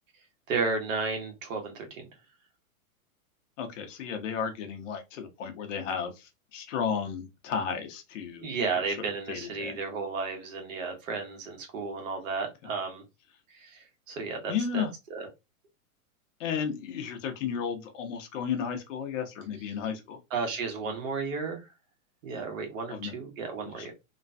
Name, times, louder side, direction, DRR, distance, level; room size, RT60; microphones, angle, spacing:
voice 1, 0.5-2.0 8.4-13.0 13.5-14.8 15.1-15.3 20.3-21.7 22.2-23.9, right 4 dB, 65° right, 1.3 m, -33 dB
voice 2, 3.6-9.0 9.3-9.8 12.6-12.7 14.5-14.9 16.4-20.2 22.9-23.2 23.8-23.9, left 7 dB, 60° left, 1.0 m, -33 dB
3.1 x 2.2 x 2.6 m
hypercardioid pair, 150°, 44 cm